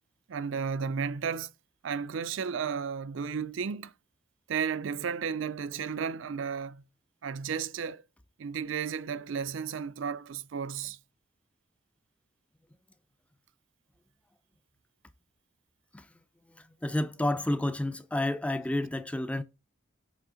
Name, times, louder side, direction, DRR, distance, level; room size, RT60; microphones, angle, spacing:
voice 1, 0.3-1.5 1.8-3.9 4.5-6.8 7.2-8.0 8.4-11.0, right 6 dB, 70° right, 0.4 m, -33 dB
voice 2, 16.5-19.4, left 1 dB, 5° left, 0.4 m, -30 dB
7.5 x 3.4 x 4.9 m
head